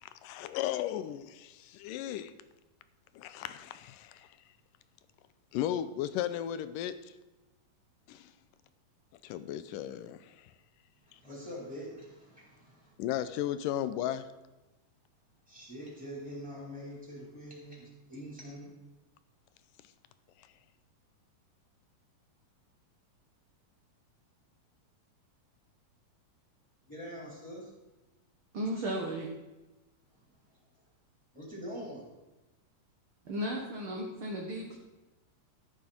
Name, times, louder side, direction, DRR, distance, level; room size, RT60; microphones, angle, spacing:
voice 1, 0.0-2.3 3.1-4.4 5.5-7.1 8.1-8.3 9.2-10.5 13.0-14.3, left 11 dB, 85° left, 2.3 m, -35 dB
voice 2, 11.0-12.9 15.5-18.7 26.9-27.7 30.1-30.2 31.3-32.0, equal, ahead, 4.2 m, -44 dB
voice 3, 28.5-29.3 33.3-34.8, equal, 50° right, 1.8 m, -35 dB
13.5 x 9.6 x 4.5 m
omnidirectional pair, 3.8 m